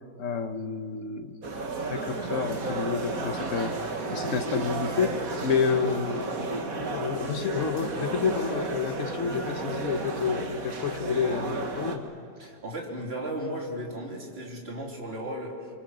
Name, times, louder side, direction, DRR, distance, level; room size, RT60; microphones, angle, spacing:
voice 1, 0.2-1.4 1.9-6.3 6.6-12.1, left 6 dB, 50° left, 8 dB, 1.5 m, -29 dB
sound 1, 1.4-12.0, right 3 dB, 55° right, 2.2 m, -32 dB
voice 2, 12.4-15.7, right 1 dB, 35° right, -1 dB, 3.5 m, -35 dB
29.5 x 24.0 x 6.3 m, 2.4 s
omnidirectional pair, 1.8 m